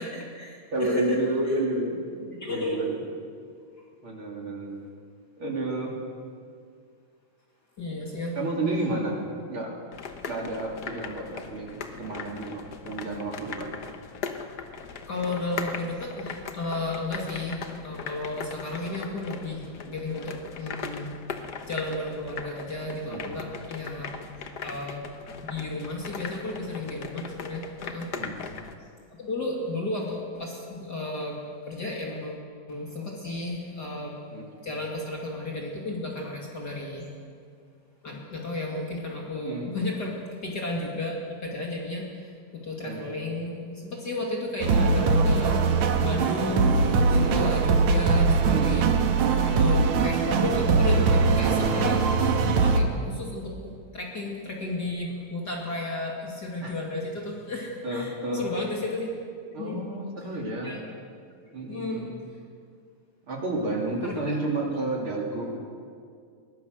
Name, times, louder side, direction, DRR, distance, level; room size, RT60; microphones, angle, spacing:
voice 1, 0.0-1.2 2.4-2.9 7.8-9.0 15.1-21.1 21.7-24.2 24.6-25.1 25.4-28.2 29.2-34.2 34.6-37.1 38.0-48.9 49.5-52.1 52.4-59.1 59.6-59.8 60.6-60.8 61.7-62.0 64.0-64.4, left 2 dB, 35° left, -2 dB, 2.7 m, -33 dB
voice 2, 0.7-3.0 4.0-4.8 5.4-6.0 8.4-9.2 9.5-9.8 10.3-13.7 23.1-23.3 28.2-28.4 34.3-34.5 39.4-39.7 42.8-43.1 47.1-47.4 48.5-48.8 49.5-49.7 56.6-56.7 57.8-58.5 59.5-60.8 61.5-62.2 63.3-65.6, right 2 dB, 45° right, -1 dB, 3.6 m, -31 dB
sound 1, 9.9-28.7, left 5 dB, 60° left, 1.1 m, -39 dB
sound 2, 44.6-52.8, right 4 dB, 70° right, 2.5 m, -22 dB
22.0 x 19.0 x 6.5 m, 2.2 s
omnidirectional pair, 3.3 m